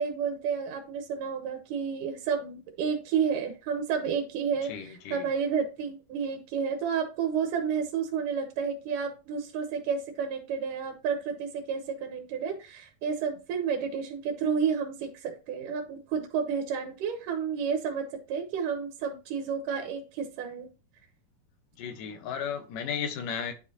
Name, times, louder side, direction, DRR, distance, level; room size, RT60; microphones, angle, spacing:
voice 1, 0.0-20.7, right 6 dB, 80° right, 2.7 m, -31 dB
voice 2, 4.7-5.3 21.8-23.5, left 7 dB, 85° left, 2.7 m, -34 dB
10.0 x 5.1 x 2.8 m
omnidirectional pair, 3.7 m